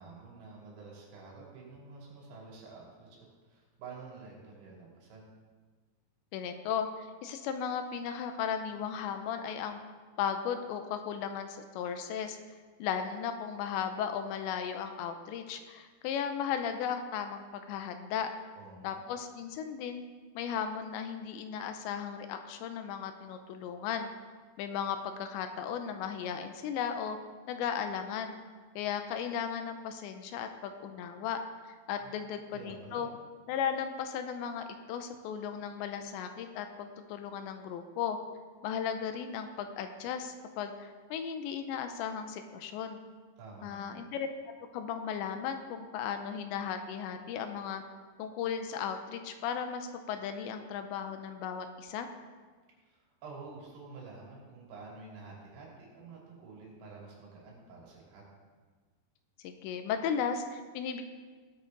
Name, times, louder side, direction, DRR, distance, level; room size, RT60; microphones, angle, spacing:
voice 1, 0.0-5.3 18.6-19.0 32.0-32.3 32.5-33.1 43.4-44.0 52.8-58.3, right 4 dB, 80° right, -4 dB, 5.2 m, -49 dB
voice 2, 6.3-9.8 10.2-12.4 12.8-18.3 18.8-20.0 20.4-24.1 24.6-27.2 27.5-28.4 28.8-31.4 31.9-33.1 33.5-38.2 38.6-43.0 43.6-44.3 44.7-47.8 48.2-52.1 59.4-61.0, left 7 dB, 85° left, 7 dB, 2.9 m, -36 dB
18.0 x 8.4 x 3.9 m, 1.4 s
omnidirectional pair, 5.3 m